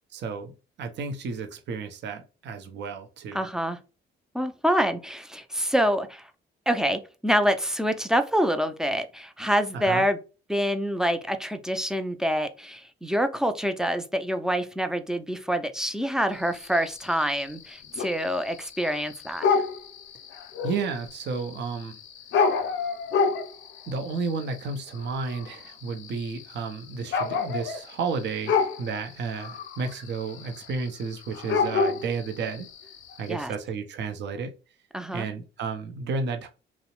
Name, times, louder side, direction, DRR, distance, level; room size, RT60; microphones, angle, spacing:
voice 1, 0.1-3.4 9.7-10.0 20.6-22.0 23.9-32.7 33.2-34.5 35.1-36.5, right 4 dB, 65° right, 0.5 m, -32 dB
voice 2, 3.3-3.8 4.3-6.3 6.7-10.2 10.5-19.5 33.3-33.5 34.9-35.3, equal, 5° right, 0.3 m, -26 dB
sound 1, 16.4-33.3, left 5 dB, 70° left, 0.5 m, -30 dB
2.8 x 2.0 x 2.9 m
cardioid pair, 90°, 20 cm